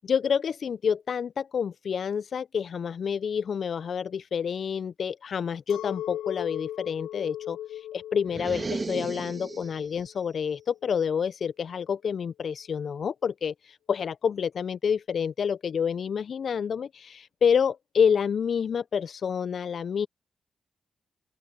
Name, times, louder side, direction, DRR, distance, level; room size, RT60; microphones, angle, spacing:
voice 1, 0.0-20.1, left 7 dB, 65° left, 0.4 m, -28 dB
Chink clink, 5.7-11.2, left 12 dB, 85° left, 1.9 m, -39 dB
sound 1, 8.3-9.9, right 3 dB, 40° right, 1.3 m, -34 dB
open air
hypercardioid pair, 40°, 0 cm